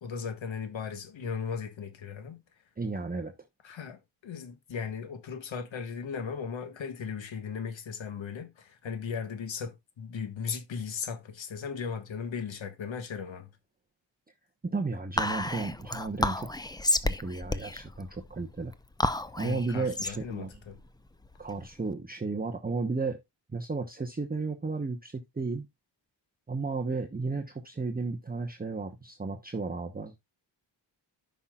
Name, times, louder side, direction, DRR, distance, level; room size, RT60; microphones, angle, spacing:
voice 1, 0.0-2.4 3.6-13.5 19.4-20.8, left 6 dB, 85° left, 1.5 m, -37 dB
voice 2, 2.8-3.3 14.6-16.5 17.0-18.7 19.3-20.5 21.4-23.2 23.5-25.7 26.5-30.2, right 3 dB, 20° right, 0.9 m, -33 dB
Whispering, 15.2-21.8, left 2 dB, 10° left, 0.6 m, -32 dB
14.0 x 5.8 x 2.3 m
wide cardioid pair, 115°, 45 cm